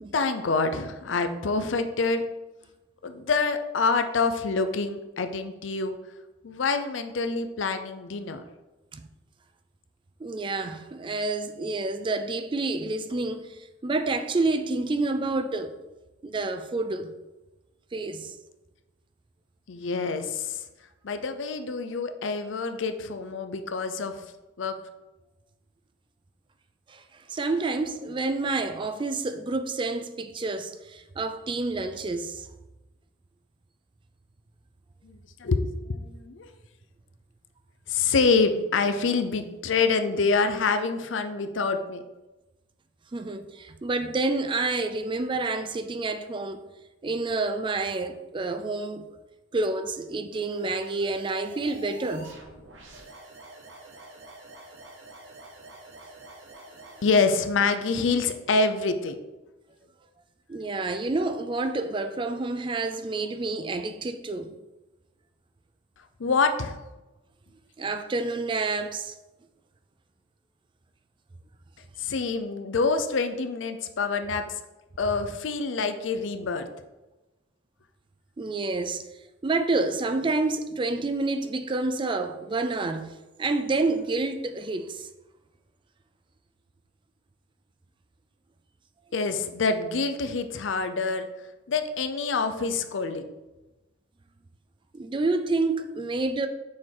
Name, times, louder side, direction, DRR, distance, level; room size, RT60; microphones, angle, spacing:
voice 1, 0.1-2.2 3.0-6.0 6.4-8.4 19.7-20.6 21.0-24.2 24.6-24.8 35.0-36.5 37.9-42.0 57.0-59.2 66.2-66.8 72.0-74.4 75.0-76.7 89.1-91.3 91.7-93.3, left 4 dB, 75° left, 0.6 m, -26 dB
voice 2, 10.2-15.7 16.2-17.1 17.9-18.4 26.9-32.5 43.1-46.6 47.0-49.1 49.5-52.3 60.5-64.6 67.8-69.1 78.4-79.0 79.4-85.1 94.9-96.5, right 3 dB, 25° right, 0.4 m, -29 dB
sound 1, 50.3-57.5, right 2 dB, 80° right, 1.1 m, -47 dB
6.3 x 4.6 x 3.8 m
head